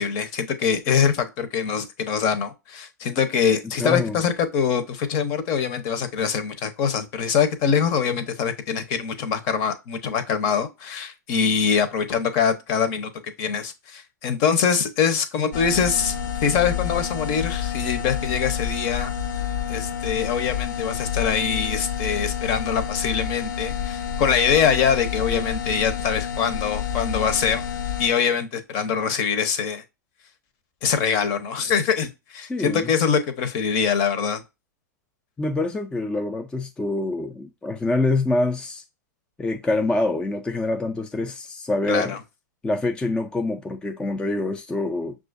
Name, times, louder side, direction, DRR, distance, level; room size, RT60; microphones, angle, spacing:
voice 1, 0.0-16.1 16.4-19.1 19.7-27.6 28.0-29.8 30.8-34.4 41.9-42.2, left 7 dB, 45° left, 0.8 m, -23 dB
voice 2, 3.8-4.2 32.5-32.9 35.4-38.8 39.4-42.1 42.6-45.2, left 2 dB, 10° left, 0.4 m, -25 dB
sound 1, 15.5-28.1, left 8 dB, 75° left, 0.5 m, -29 dB
6.0 x 2.4 x 2.5 m
hypercardioid pair, 105°, 10 cm